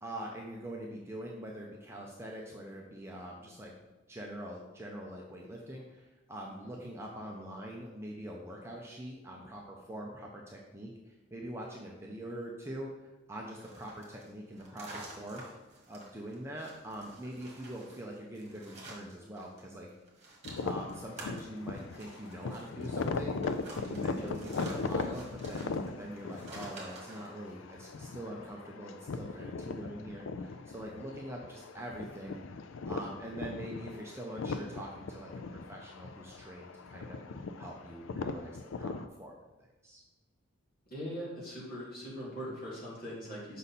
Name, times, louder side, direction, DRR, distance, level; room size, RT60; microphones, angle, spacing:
voice 1, 0.0-3.7 4.1-12.9 13.3-15.4 15.9-19.9 20.6-23.4 23.8-32.4 32.9-40.0, right 1 dB, 10° right, -1 dB, 0.7 m, -44 dB
sound 1, 13.5-19.6 19.9-27.3, right 2 dB, 30° right, 1.7 m, -50 dB
sound 2, 20.4-39.1, left 4 dB, 65° left, 0.4 m, -39 dB
voice 2, 40.9-43.6, equal, 45° left, -6 dB, 2.7 m, -41 dB
6.6 x 5.5 x 4.2 m, 1.1 s
head